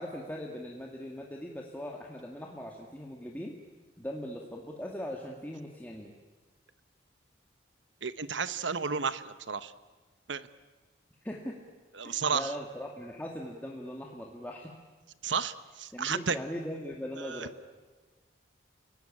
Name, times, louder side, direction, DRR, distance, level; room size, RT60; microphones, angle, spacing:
voice 1, 0.0-3.5 4.0-6.1 11.2-11.6 12.0-14.7 15.9-17.5, equal, 10° left, -1 dB, 1.8 m, -40 dB
voice 2, 8.0-9.7 10.3-10.5 12.0-12.5 15.2-16.4 17.2-17.5, right 5 dB, 80° right, 14 dB, 1.0 m, -32 dB
29.5 x 17.5 x 9.9 m, 1.3 s
head